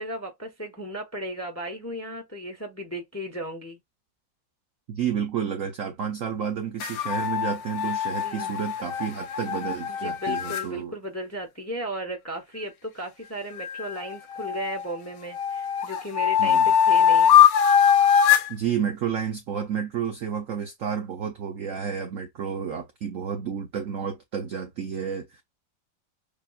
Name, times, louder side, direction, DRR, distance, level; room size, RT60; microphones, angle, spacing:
voice 1, 0.0-3.8 8.2-8.5 9.9-17.3, right 1 dB, 15° left, 0.7 m, -35 dB
voice 2, 4.9-10.9 16.4-16.7 18.5-25.4, right 7 dB, 70° right, 0.8 m, -31 dB
sound 1, 6.8-10.7 13.6-14.8 15.3-18.5, left 8 dB, 75° left, 1.3 m, -21 dB
6.7 x 2.4 x 2.4 m
omnidirectional pair, 2.0 m